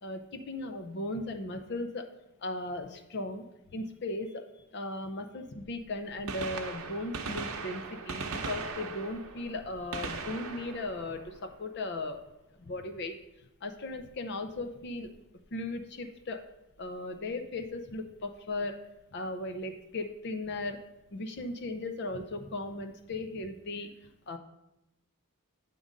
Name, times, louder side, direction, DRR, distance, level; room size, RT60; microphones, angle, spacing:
voice 1, 0.0-2.1 2.4-4.4 4.7-12.2 12.7-13.1 13.6-15.1 15.5-16.4 16.8-18.8 19.1-20.8 21.1-23.9 24.3-24.4, left 2 dB, 50° left, 7 dB, 0.5 m, -37 dB
Gunshot gunfire, 6.1-12.0 13.9-14.1 15.1-15.2 16.8-16.9 18.3-18.4 18.5-18.6, right 4 dB, 75° right, 0.8 m, -39 dB
8.4 x 3.7 x 5.2 m, 0.90 s
head